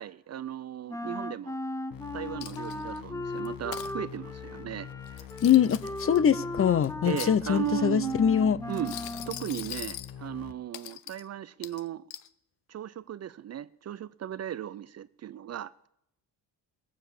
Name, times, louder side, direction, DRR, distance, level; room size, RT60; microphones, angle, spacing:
voice 1, 0.0-1.6 2.1-5.3 7.0-8.2 8.7-9.0 9.3-12.0 12.7-15.9, right 10 dB, 40° right, 0.5 m, -36 dB
Wind instrument woodwind instrument, 0.9-9.5, left 1 dB, 5° left, 0.9 m, -37 dB
sound 1, 1.9-10.5, left 9 dB, 50° left, 1.0 m, -44 dB
Coin (dropping), 2.4-3.0 3.4-3.9 5.1-6.2 6.8-7.8 8.7-10.1 10.7-11.2 11.6-12.3, left 14 dB, 80° left, 0.8 m, -41 dB
voice 2, 5.4-8.6, left 8 dB, 30° left, 0.6 m, -23 dB
18.0 x 7.4 x 8.5 m
supercardioid pair, 85°, 43 cm